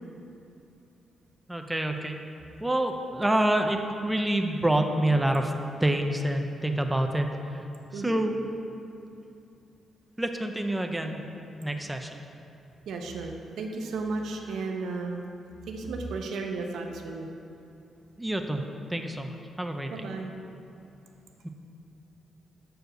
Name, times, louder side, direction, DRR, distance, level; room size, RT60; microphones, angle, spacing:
voice 1, 1.5-2.2 2.6-5.5 5.8-7.7 7.9-8.4 10.2-11.2 11.6-12.3 18.2-20.0 21.4-21.5, right 1 dB, 10° right, 4 dB, 0.4 m, -27 dB
voice 2, 12.9-15.2 15.7-17.3 19.9-20.3, right 3 dB, 85° right, 3 dB, 0.7 m, -34 dB
6.3 x 4.7 x 6.4 m, 2.7 s
cardioid pair, 130°, 0 cm